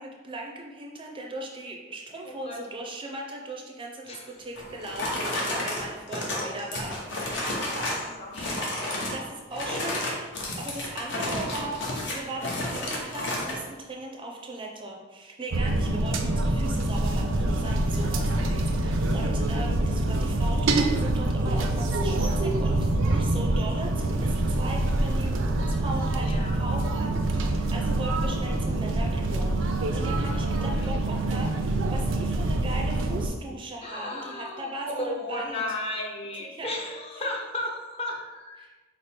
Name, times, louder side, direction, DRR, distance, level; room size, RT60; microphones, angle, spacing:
voice 1, 0.0-7.0 9.1-10.3 10.6-11.8 12.1-35.6 36.5-36.7 38.6-38.7, right 2 dB, 25° right, 0 dB, 0.4 m, -38 dB
voice 2, 2.2-2.6 4.0-4.3 7.3-8.8 18.3-18.5 26.2-26.6 30.6-30.9 33.8-38.6, left 1 dB, 30° left, 0 dB, 0.6 m, -35 dB
sound 1, 4.6-8.1 8.3-9.2 9.5-13.6, left 1 dB, 65° left, 0.9 m, -31 dB
sound 2, 15.5-33.3, right 2 dB, 85° right, 0.5 m, -25 dB
5.0 x 2.0 x 4.3 m, 1.2 s
head